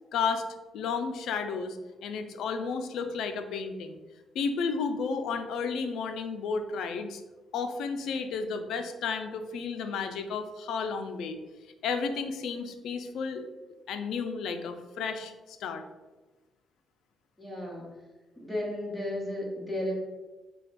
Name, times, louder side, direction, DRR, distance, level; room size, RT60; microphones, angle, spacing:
voice 1, 0.1-0.5 0.7-4.0 4.3-7.2 7.5-11.4 11.8-13.4 13.9-15.3 15.6-15.8, left 5 dB, 80° left, 8 dB, 0.4 m, -32 dB
voice 2, 17.4-17.9 18.4-19.9, left 1 dB, 5° left, -4 dB, 1.3 m, -34 dB
4.2 x 2.3 x 4.1 m, 1.2 s
cardioid pair, 90°, 0 cm